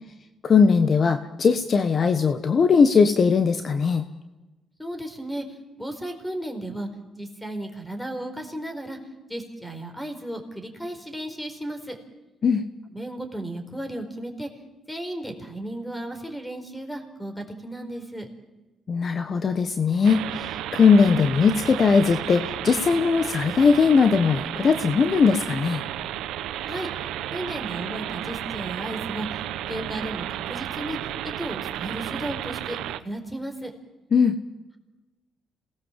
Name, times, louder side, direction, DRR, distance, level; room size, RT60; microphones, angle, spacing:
voice 1, 0.4-4.0 12.4-12.6 18.9-25.8 34.1-34.4, left 5 dB, 45° left, 9 dB, 1.2 m, -19 dB
voice 2, 4.8-6.9 7.1-9.0 9.3-12.0 12.9-14.5 14.9-18.3 26.7-26.9 27.3-33.7, right 1 dB, 5° left, 6 dB, 4.6 m, -34 dB
sound 1, 20.0-33.0, right 12 dB, 90° right, 1.0 m, -33 dB
27.0 x 19.0 x 7.6 m, 1.1 s
cardioid pair, 90°, 0 cm